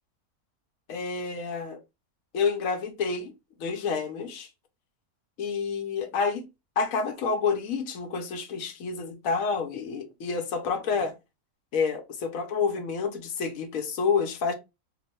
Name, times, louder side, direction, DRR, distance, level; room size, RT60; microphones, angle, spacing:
voice 1, 0.9-1.8 2.3-3.3 3.6-4.5 5.4-6.5 6.8-11.2 11.7-14.5, left 5 dB, 75° left, 1.0 m, -29 dB
2.9 x 2.1 x 4.0 m
omnidirectional pair, 1.5 m